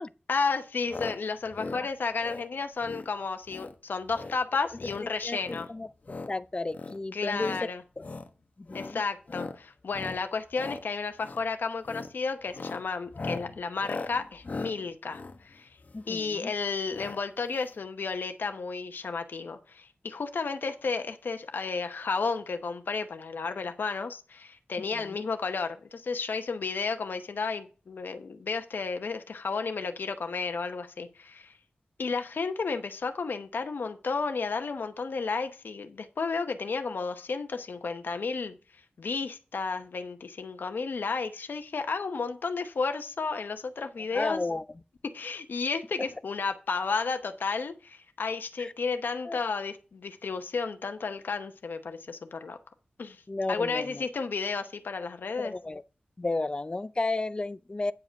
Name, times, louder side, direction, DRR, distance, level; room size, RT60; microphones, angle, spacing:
voice 1, 0.3-5.7 7.1-7.8 8.7-15.7 16.1-31.6 32.0-38.6 39.0-44.4 45.0-52.6 53.0-53.2 53.5-55.5, left 4 dB, 85° left, 0.9 m, -32 dB
sound 1, 0.9-1.2 1.5-1.8 2.2-2.5 2.8-3.1 3.5-3.8 4.1-4.4 4.7-5.0 5.4-6.3 6.7-7.0 7.3-7.6 8.0-8.3 8.7-9.0 9.3-9.6 9.9-10.2 10.5-10.8 11.2-11.5 11.8-12.1 12.5-16.2 16.9-17.2 17.5-17.6 17.8-17.9, left 3 dB, 50° left, 1.0 m, -39 dB
voice 2, 6.3-7.6 8.0-8.1 8.6-9.0 15.9-16.5 24.9-25.2 44.1-44.6 48.6-48.7 49.2-49.4 53.3-54.0 55.4-55.8 56.2-57.9, left 2 dB, 30° left, 0.5 m, -33 dB
9.5 x 4.9 x 6.2 m
wide cardioid pair, 90°, 3 cm